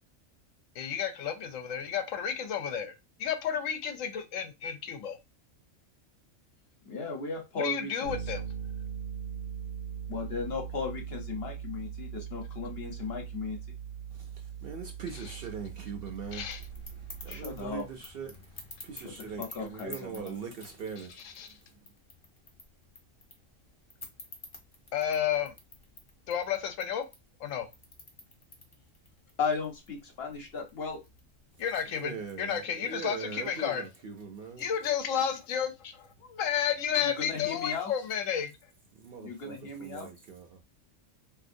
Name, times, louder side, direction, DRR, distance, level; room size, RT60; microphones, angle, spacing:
voice 1, 0.8-2.9 3.2-5.2 7.6-8.4 16.3-16.6 21.2-21.5 24.9-25.5 26.3-27.0 27.4-27.7 31.6-33.8 34.6-38.6, left 8 dB, 80° left, 1.0 m, -32 dB
voice 2, 6.8-8.2 10.1-13.6 17.3-17.8 19.0-20.4 29.4-31.0 37.0-37.9 39.2-40.1, left 5 dB, 55° left, 1.0 m, -36 dB
Bass guitar, 8.1-17.9, right 8 dB, 80° right, 1.1 m, -40 dB
voice 3, 14.1-16.5 17.0-21.6 31.9-34.7 38.9-40.6, right 6 dB, 55° right, 0.7 m, -42 dB
sound 1, 16.2-31.9, left 2 dB, 30° left, 0.6 m, -52 dB
3.4 x 2.7 x 2.6 m
omnidirectional pair, 1.3 m